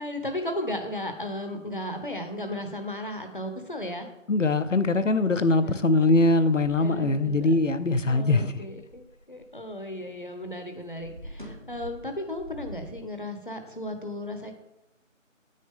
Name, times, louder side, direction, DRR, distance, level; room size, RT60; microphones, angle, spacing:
voice 1, 0.0-4.1 5.6-5.8 6.8-7.6 8.1-14.5, left 1 dB, 40° left, 0.9 m, -35 dB
voice 2, 4.3-8.5, left 2 dB, 65° left, 0.7 m, -22 dB
sound 1, 7.9-10.2 10.4-13.0, equal, 35° right, 1.2 m, -46 dB
9.2 x 6.4 x 3.7 m
figure-of-eight pair, 170°, 40 cm